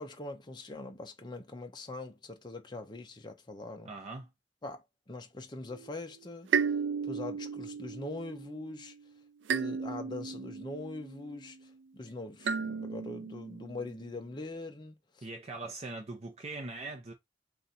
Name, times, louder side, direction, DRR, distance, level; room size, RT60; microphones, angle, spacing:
voice 1, 0.0-3.9 4.6-6.5 7.0-8.9 9.5-15.3, left 2 dB, 25° left, 0.5 m, -42 dB
voice 2, 3.9-4.3 15.2-17.1, right 3 dB, 35° right, 0.7 m, -41 dB
sound 1, 5.7-6.1 6.5-8.9 9.5-11.5 12.4-14.0, right 6 dB, 70° right, 0.4 m, -35 dB
3.9 x 2.4 x 4.1 m
head